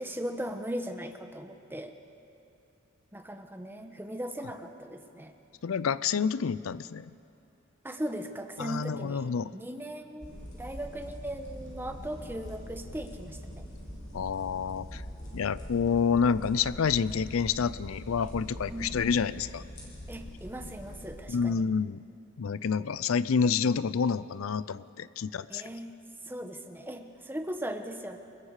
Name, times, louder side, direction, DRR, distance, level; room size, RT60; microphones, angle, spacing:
voice 1, 0.0-1.9 3.1-5.3 7.8-9.3 9.5-13.6 18.7-19.0 20.1-21.6 25.5-26.0 26.3-28.2, right 1 dB, 10° right, 6 dB, 1.2 m, -38 dB
voice 2, 5.6-7.1 8.6-9.5 14.1-15.0 15.3-19.6 21.3-22.0 22.4-25.6, left 6 dB, 75° left, 17 dB, 0.5 m, -28 dB
sound 1, 10.2-21.2, equal, 40° left, 7.0 m, -43 dB
29.5 x 21.5 x 4.9 m, 2.6 s
head